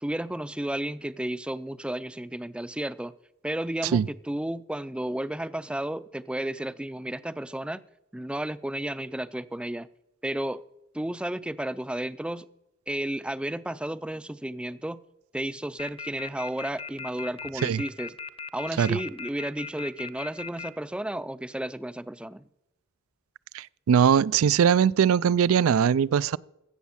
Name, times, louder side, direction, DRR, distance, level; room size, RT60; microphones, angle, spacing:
voice 1, 0.0-3.1 3.4-7.8 8.1-9.9 10.2-10.6 10.9-12.5 12.9-15.0 15.3-18.1 18.5-22.4, right 1 dB, 5° right, 0.4 m, -32 dB
sound 1, 15.8-20.7, left 6 dB, 25° left, 0.7 m, -37 dB
voice 2, 23.5-26.4, right 7 dB, 90° right, 0.4 m, -21 dB
15.5 x 7.2 x 7.1 m
head